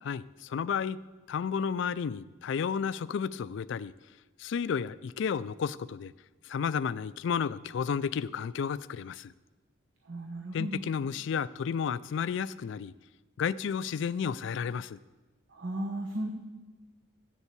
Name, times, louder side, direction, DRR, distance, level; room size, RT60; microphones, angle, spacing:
voice 1, 0.0-1.0 1.3-3.9 4.4-6.1 6.5-9.3 10.5-12.9 13.4-15.0, left 7 dB, 60° left, 17 dB, 0.3 m, -32 dB
voice 2, 10.1-10.8 15.6-16.3, right 1 dB, 65° right, 2 dB, 1.0 m, -35 dB
7.8 x 7.2 x 8.1 m, 1.2 s
head